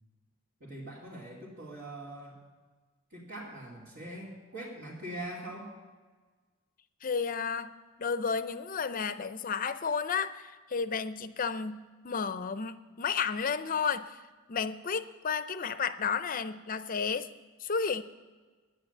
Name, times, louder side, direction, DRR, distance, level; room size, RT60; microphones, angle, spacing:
voice 1, 0.6-2.4 3.1-5.7, right 1 dB, 60° right, -7 dB, 2.5 m, -42 dB
voice 2, 7.0-7.7 8.0-14.2 14.5-17.3 17.6-18.0, left 6 dB, 40° left, 13 dB, 0.5 m, -32 dB
9.9 x 9.9 x 7.8 m, 1.4 s
head